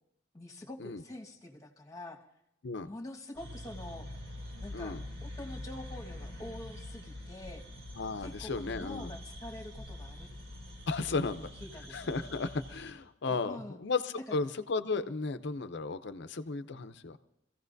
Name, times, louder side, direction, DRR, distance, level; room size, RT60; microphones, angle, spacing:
voice 1, 0.3-2.2 2.8-4.1 4.6-7.6 8.2-10.3 11.1-12.1 13.3-13.8 14.3-14.4 14.9-15.1, left 1 dB, 20° left, 2 dB, 1.5 m, -46 dB
sound 1, 3.3-12.9, left 1 dB, 80° right, 3.9 m, -45 dB
voice 2, 8.0-9.1 10.9-11.5 11.9-17.2, left 4 dB, 65° left, 11 dB, 0.7 m, -34 dB
25.5 x 15.5 x 2.7 m, 0.78 s
head